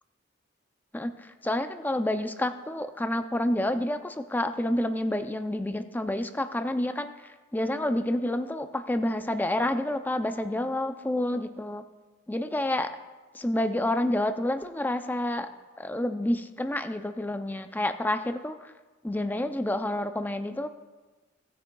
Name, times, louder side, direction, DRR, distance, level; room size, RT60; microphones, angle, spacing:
voice 1, 1.4-7.1 7.5-11.8 12.3-12.9 13.3-15.5 15.8-18.7 19.0-20.7, left 1 dB, 10° left, 8 dB, 0.4 m, -29 dB
18.0 x 8.3 x 2.3 m, 1.3 s
head